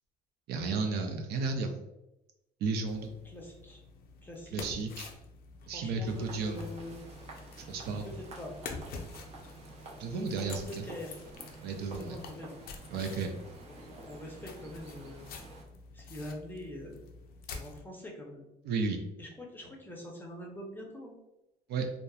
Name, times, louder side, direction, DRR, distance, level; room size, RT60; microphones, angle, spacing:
voice 1, 0.5-1.8 2.6-3.1 4.5-5.1 5.7-6.6 7.7-8.1 10.0-10.8 11.6-12.2 12.9-13.4 18.6-19.0 21.7-21.8, right 4 dB, 75° right, 3 dB, 0.4 m, -33 dB
sound 1, 2.9-17.9, left 4 dB, 65° left, 0.4 m, -48 dB
voice 2, 3.2-3.8 4.2-4.6 5.7-7.0 8.0-8.5 10.1-11.2 12.0-12.6 13.6-15.3 15.9-17.0 17.5-18.5 19.2-21.1, left 1 dB, 10° left, -1 dB, 0.6 m, -44 dB
sound 2, 6.0-15.6, right 2 dB, 40° right, 0.7 m, -50 dB
2.7 x 2.1 x 2.3 m, 0.92 s
cardioid pair, 110°, 17 cm